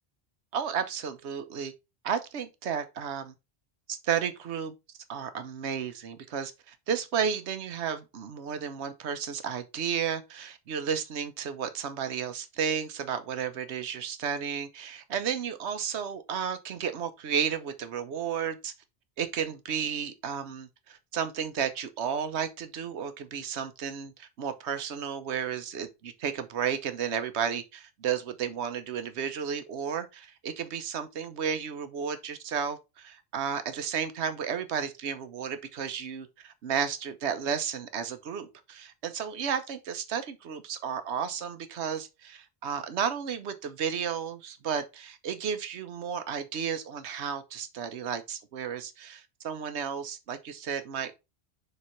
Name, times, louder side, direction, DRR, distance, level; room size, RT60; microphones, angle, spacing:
voice 1, 0.5-1.7 2.0-3.3 3.9-4.7 5.1-18.7 19.2-51.1, right 7 dB, 90° right, 1.1 m, -33 dB
6.9 x 3.3 x 4.3 m
omnidirectional pair, 1.1 m